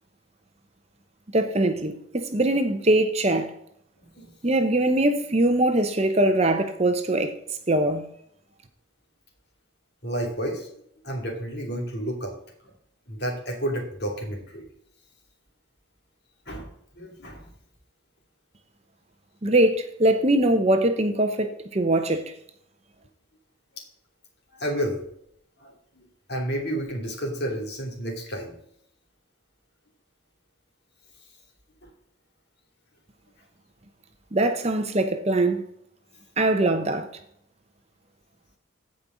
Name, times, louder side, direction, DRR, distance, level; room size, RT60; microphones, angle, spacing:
voice 1, 1.3-3.5 4.4-7.3 7.7-8.0 19.4-22.2 34.3-35.6 36.4-37.1, right 1 dB, 30° right, 0.9 m, -22 dB
voice 2, 10.0-10.7 11.0-12.3 13.1-14.6 16.5-16.7 17.0-17.5 24.5-25.0 25.6-28.5, right 1 dB, 55° left, 2.9 m, -31 dB
15.5 x 5.3 x 4.0 m
head